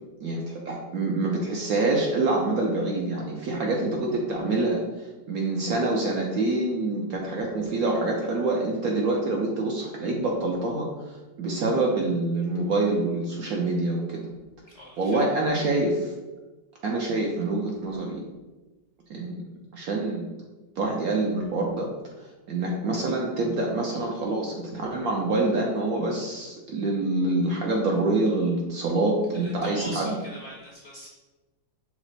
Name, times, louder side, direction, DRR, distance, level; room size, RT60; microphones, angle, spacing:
voice 1, 0.2-14.3 15.0-16.1 16.8-18.2 19.1-19.4 19.7-20.2 20.8-21.9 22.2-30.2, right 2 dB, 70° right, -1 dB, 0.9 m, -26 dB
voice 2, 14.7-15.2 29.3-31.1, equal, 60° left, -4 dB, 0.7 m, -42 dB
5.9 x 2.1 x 4.0 m, 1.2 s
omnidirectional pair, 2.0 m